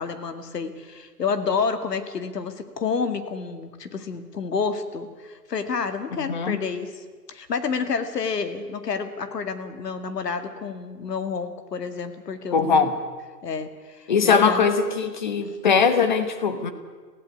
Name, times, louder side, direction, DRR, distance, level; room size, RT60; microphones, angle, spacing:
voice 1, 0.0-12.9 13.4-14.7 15.4-15.6, left 5 dB, 70° left, 10 dB, 2.2 m, -29 dB
voice 2, 6.2-6.6 12.5-13.0 14.1-16.7, left 5 dB, 30° left, 10 dB, 1.2 m, -21 dB
17.0 x 16.0 x 9.6 m, 1.5 s
hypercardioid pair, 175°, 50 cm